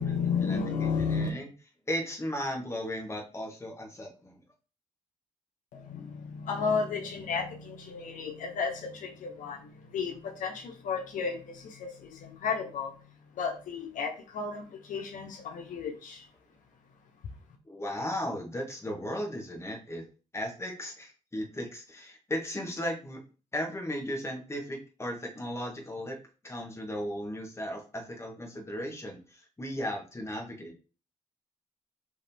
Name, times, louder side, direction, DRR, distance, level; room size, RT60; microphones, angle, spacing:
voice 1, 0.0-1.3 5.7-16.3, left 5 dB, 80° left, 2 dB, 0.9 m, -33 dB
voice 2, 1.1-1.5 1.9-4.4 17.6-20.0 20.3-23.2 23.5-26.2 26.4-30.7, equal, 20° left, 0 dB, 1.5 m, -36 dB
3.7 x 3.0 x 4.5 m, 0.35 s
cardioid pair, 85°, 13 cm